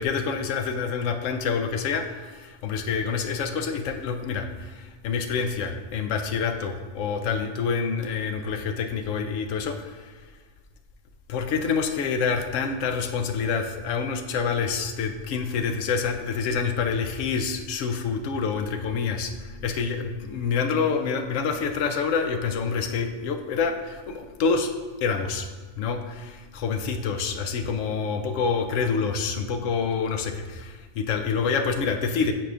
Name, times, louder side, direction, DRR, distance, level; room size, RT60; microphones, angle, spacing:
voice 1, 0.0-10.1 11.3-24.7 25.0-25.5 25.8-32.3, left 5 dB, 90° left, 6 dB, 1.0 m, -27 dB
8.8 x 4.8 x 2.5 m, 1.4 s
omnidirectional pair, 1.3 m